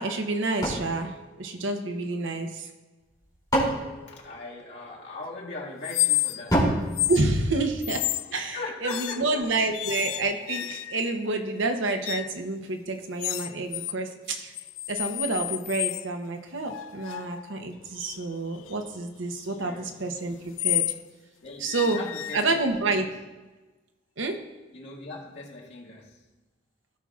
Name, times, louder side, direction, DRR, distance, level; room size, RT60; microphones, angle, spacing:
voice 1, 0.0-2.7 7.1-8.0 8.3-14.5 14.9-20.8 21.6-22.0 22.3-23.1 24.2-24.4, right 2 dB, 75° right, 5 dB, 0.9 m, -28 dB
sound 1, 0.6-2.2 3.0-5.0 6.5-8.1, right 1 dB, 20° left, 2.8 m, -29 dB
voice 2, 4.2-6.7 8.3-9.5 19.4-19.9 21.4-23.1 24.7-26.2, left 3 dB, 60° left, -5 dB, 2.0 m, -40 dB
sound 2, 5.8-6.6 6.9-7.3 7.8-8.3 8.9-9.4 9.7-11.1 12.0-12.4 13.2-14.0 14.3-16.1 16.7-21.0 21.7-22.9, left 15 dB, 90° left, 0.3 m, -31 dB
16.5 x 5.8 x 2.5 m, 1.2 s
head